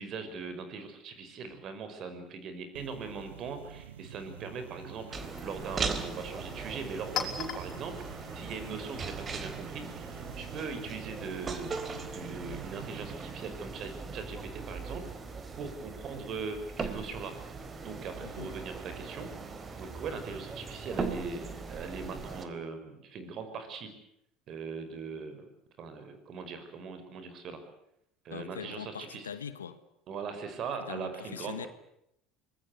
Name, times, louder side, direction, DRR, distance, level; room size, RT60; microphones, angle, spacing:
voice 1, 0.0-8.0 8.3-15.0 15.6-17.3 17.8-19.3 19.8-23.9 24.5-25.5 25.8-27.6 28.2-29.2 30.1-31.7, right 5 dB, 50° right, 5.8 m, -40 dB
sound 1, 2.7-13.2, right 11 dB, 80° right, 1.0 m, -49 dB
Chink clink, 4.2-9.7, left 8 dB, 50° left, 5.5 m, -43 dB
sound 2, 5.1-22.5, right 4 dB, 30° right, 3.6 m, -39 dB
voice 2, 18.2-18.5 28.3-29.8 30.8-31.7, left 8 dB, 90° left, 1.5 m, -42 dB
25.5 x 21.0 x 8.2 m
hypercardioid pair, 70°, 0 cm